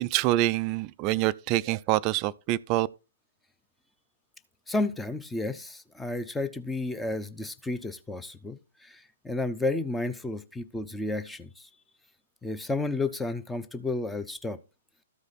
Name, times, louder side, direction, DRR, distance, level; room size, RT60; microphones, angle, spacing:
voice 1, 0.0-2.9, right 16 dB, 30° right, 0.4 m, -26 dB
voice 2, 4.7-11.7 12.4-14.6, left 2 dB, 5° left, 0.7 m, -32 dB
13.5 x 4.8 x 4.1 m
figure-of-eight pair, 120°, 0 cm